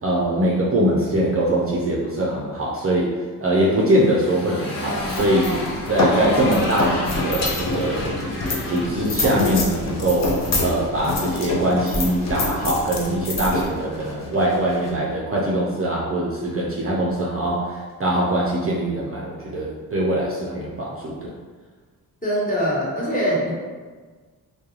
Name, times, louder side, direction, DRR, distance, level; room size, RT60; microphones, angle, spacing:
voice 1, 0.0-3.1 3.4-8.2 8.7-10.3 10.6-21.3, right 1 dB, 35° right, -4 dB, 0.5 m, -22 dB
Motorcycle, 3.5-10.0, left 1 dB, 80° left, 1.0 m, -32 dB
sound 1, 5.0-15.0, left 2 dB, 45° left, 0.6 m, -26 dB
voice 2, 22.2-23.5, equal, 20° left, -7 dB, 1.1 m, -22 dB
2.3 x 2.2 x 3.0 m, 1.4 s
supercardioid pair, 50°, 39 cm